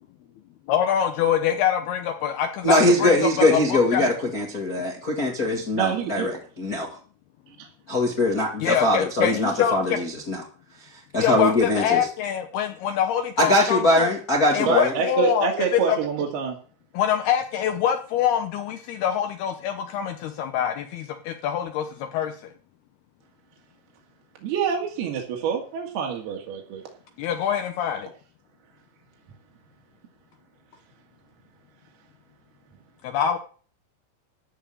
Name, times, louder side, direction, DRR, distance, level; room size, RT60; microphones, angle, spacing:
voice 1, 0.7-4.1 8.6-10.0 11.2-14.1 14.5-16.0 16.9-22.5 27.2-28.1 33.0-33.4, left 9 dB, 75° left, 6 dB, 2.8 m, -25 dB
voice 2, 2.6-6.3 6.6-6.9 7.9-10.4 11.1-12.0 13.4-14.9, left 1 dB, 30° left, -1 dB, 1.6 m, -22 dB
voice 3, 5.8-6.3 7.6-7.7 14.6-16.6 24.4-26.8, right 6 dB, 65° right, 1 dB, 3.6 m, -26 dB
14.0 x 5.6 x 8.7 m, 0.41 s
omnidirectional pair, 5.0 m